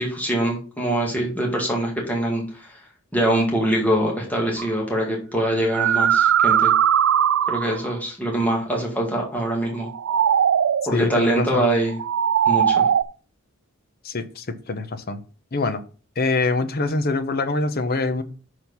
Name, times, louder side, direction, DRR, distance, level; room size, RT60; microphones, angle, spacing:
voice 1, 0.0-2.8 3.1-6.7 7.5-9.9 10.9-12.0 12.5-12.8, right 1 dB, 5° left, 1.9 m, -23 dB
sound 1, 4.6-4.7 5.5-7.9 9.8-10.9 11.9-13.0, right 9 dB, 60° right, 0.3 m, -19 dB
voice 2, 10.9-11.7 14.0-15.2 15.5-15.8 16.2-18.2, left 3 dB, 45° left, 0.8 m, -24 dB
6.4 x 4.5 x 5.4 m
head